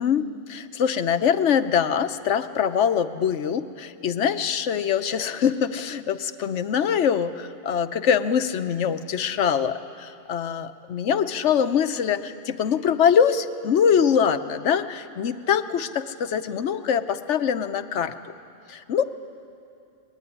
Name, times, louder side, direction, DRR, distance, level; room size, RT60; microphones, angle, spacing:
voice 1, 0.0-18.1 18.7-19.0, left 7 dB, 85° left, 10 dB, 1.1 m, -23 dB
24.0 x 20.5 x 9.8 m, 2.5 s
omnidirectional pair, 1.2 m